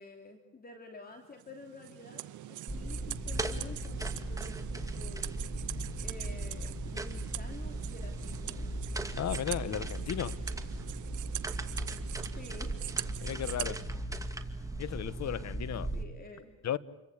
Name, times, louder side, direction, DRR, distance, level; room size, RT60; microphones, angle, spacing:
voice 1, 0.0-5.4 6.0-8.7 12.3-12.8 15.9-16.6, left 3 dB, 30° left, 3.0 m, -50 dB
sound 1, 1.4-13.7, right 14 dB, 75° right, 0.9 m, -43 dB
sound 2, 2.7-16.0, right 1 dB, 10° right, 2.3 m, -37 dB
voice 2, 9.2-10.4 13.2-13.8 14.8-15.9 16.6-16.8, left 10 dB, 60° left, 1.2 m, -35 dB
28.0 x 23.5 x 8.5 m
cardioid pair, 90°, 30 cm